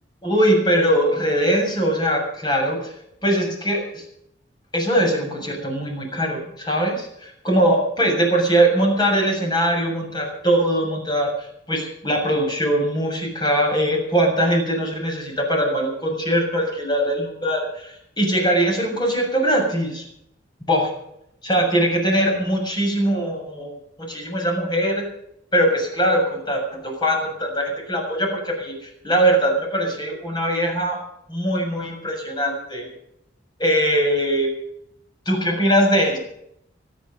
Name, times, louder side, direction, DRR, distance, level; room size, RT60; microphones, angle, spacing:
voice 1, 0.2-2.9 3.2-4.0 4.7-11.3 11.7-20.0 20.7-20.9 21.4-25.1 25.5-31.0 31.3-32.9 33.6-34.5 35.3-36.2, right 1 dB, 25° left, 1 dB, 7.0 m, -21 dB
25.0 x 10.0 x 5.4 m, 0.75 s
head